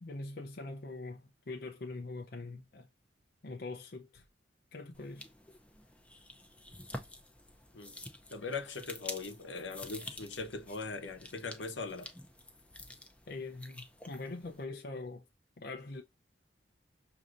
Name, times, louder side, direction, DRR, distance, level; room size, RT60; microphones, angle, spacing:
voice 1, 0.0-2.9 3.4-4.2 4.7-5.2 13.3-15.2 15.6-16.0, left 3 dB, 55° left, 0.6 m, -43 dB
sound 1, 4.9-14.6, left 1 dB, 5° left, 0.6 m, -49 dB
voice 2, 8.3-12.1, left 4 dB, 80° left, 1.0 m, -40 dB
6.2 x 2.7 x 2.5 m
head